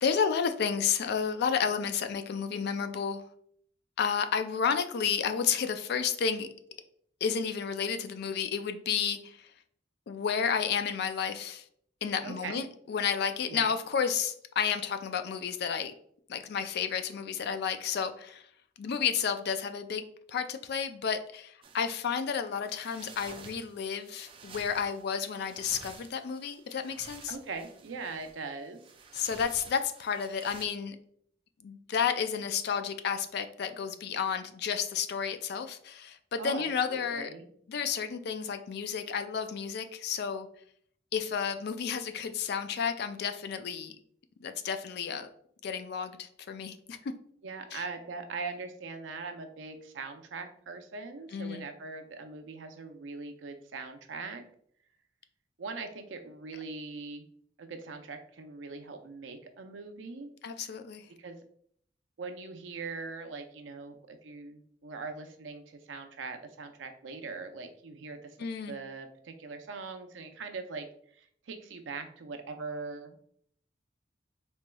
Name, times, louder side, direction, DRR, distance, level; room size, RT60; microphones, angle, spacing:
voice 1, 0.0-3.2 4.0-6.5 7.2-9.5 10.1-11.6 12.0-15.9 16.3-18.5 18.8-27.4 29.1-31.0 31.6-37.3 37.7-40.5 41.1-44.0 44.4-45.3 45.6-47.1 47.7-47.8 51.3-51.7 60.4-61.1 68.4-68.8, left 7 dB, 60° left, 9 dB, 0.3 m, -31 dB
voice 2, 12.2-12.6 13.5-13.7 27.3-28.8 36.4-37.4 47.4-54.4 55.6-57.3 57.6-60.3 60.6-60.7 61.2-61.4 62.2-68.4 68.7-70.9 71.1-73.2, right 4 dB, 85° right, 7 dB, 0.5 m, -41 dB
sound 1, 21.6-30.7, right 4 dB, 30° right, 0.4 m, -52 dB
4.4 x 2.9 x 2.2 m, 0.64 s
head